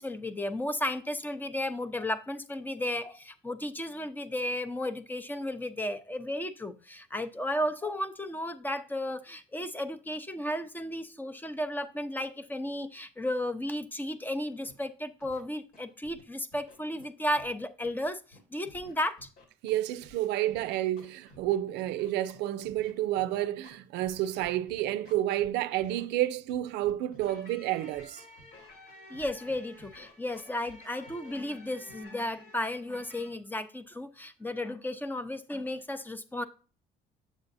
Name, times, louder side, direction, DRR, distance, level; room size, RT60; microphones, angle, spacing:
voice 1, 0.0-19.3 29.1-36.4, left 1 dB, 10° left, 0.6 m, -34 dB
Scratching (performance technique), 14.6-14.7 15.2-15.4 15.7-16.2 16.5-17.5 17.8-20.1 20.5-25.5 25.8-26.0 26.5-27.4 27.9-28.0 28.4-28.7 29.1-30.8 31.1-31.3 31.9-32.0, left 1 dB, 75° left, 2.3 m, -54 dB
voice 2, 19.6-28.2, right 13 dB, 85° right, 0.4 m, -30 dB
sound 1, 27.2-33.3, left 2 dB, 90° left, 3.2 m, -52 dB
7.4 x 6.8 x 2.6 m
cardioid pair, 110°, 17 cm